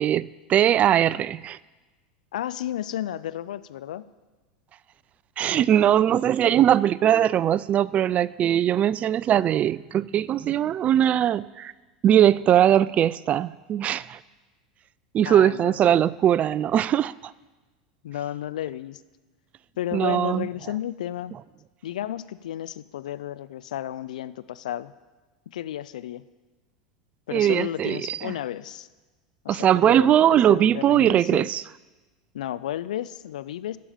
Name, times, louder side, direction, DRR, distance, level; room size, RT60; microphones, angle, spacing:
voice 1, 0.0-1.6 5.4-11.7 12.0-14.2 15.1-17.3 19.9-20.5 27.3-28.3 29.5-31.6, right 10 dB, 35° right, 20 dB, 0.3 m, -20 dB
voice 2, 2.3-4.0 15.2-16.1 18.0-19.0 19.8-21.4 21.8-24.9 25.5-26.2 27.3-28.9 29.4-31.6 32.3-33.8, left 12 dB, 80° left, 16 dB, 0.4 m, -33 dB
9.3 x 6.9 x 8.8 m, 1.2 s
hypercardioid pair, 95°, 4 cm